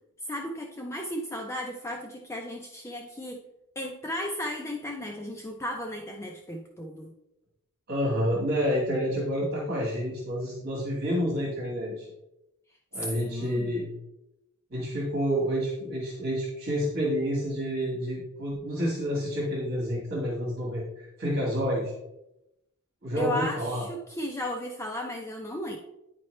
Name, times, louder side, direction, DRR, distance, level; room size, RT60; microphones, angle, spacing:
voice 1, 0.3-3.4 3.8-7.1 12.9-13.7 23.1-25.8, equal, 10° left, 1 dB, 0.5 m, -35 dB
voice 2, 7.9-12.1 12.9-13.9 14.7-21.9 23.0-23.8, equal, 45° right, -5 dB, 1.6 m, -29 dB
10.0 x 4.4 x 3.2 m, 0.88 s
head